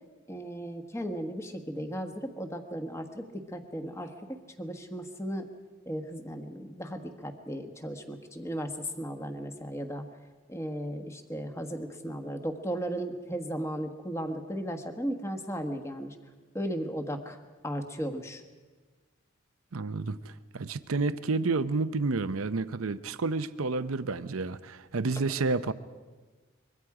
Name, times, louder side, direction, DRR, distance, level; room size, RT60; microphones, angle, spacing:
voice 1, 0.3-5.5 5.8-10.0 10.5-16.2 16.5-17.4 17.6-18.4, equal, 15° left, 6 dB, 1.3 m, -36 dB
voice 2, 19.7-25.7, right 3 dB, 85° right, 12 dB, 0.7 m, -30 dB
24.0 x 22.5 x 4.9 m, 1.3 s
head